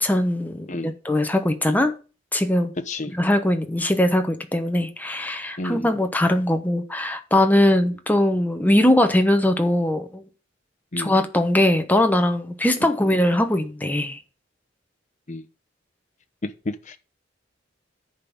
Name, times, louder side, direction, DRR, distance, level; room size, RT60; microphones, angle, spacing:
voice 1, 0.0-1.9 2.3-2.7 3.1-10.2 11.0-14.2, left 1 dB, 10° left, 1.0 m, -21 dB
voice 2, 0.7-0.9 2.9-3.1 5.6-5.9 10.9-11.1 15.3-15.4 16.9-17.0, left 2 dB, 40° left, 0.9 m, -31 dB
10.5 x 4.0 x 7.1 m
head